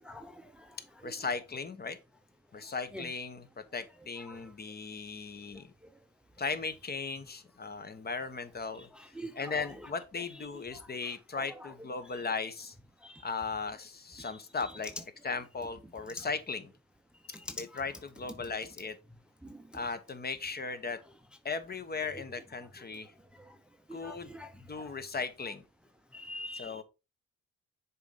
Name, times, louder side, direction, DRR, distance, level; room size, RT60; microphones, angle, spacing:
voice 1, 0.0-0.7 1.0-1.1 2.9-3.1 4.3-4.4 8.9-9.3 11.3-11.4 13.0-13.2 14.2-14.3 16.2-16.3 17.3-17.8 19.5-19.6 23.9-24.5 24.8-24.9 26.1-26.8, left 1 dB, 5° right, 0.7 m, -44 dB
voice 2, 1.0-2.0 2.5-5.7 6.4-12.7 13.2-14.9 15.2-16.7 17.5-19.0 19.7-21.0 21.4-23.1 23.9-25.6 26.5-26.8, left 4 dB, 30° left, 1.1 m, -37 dB
6.8 x 4.2 x 3.9 m
cardioid pair, 90°, 30 cm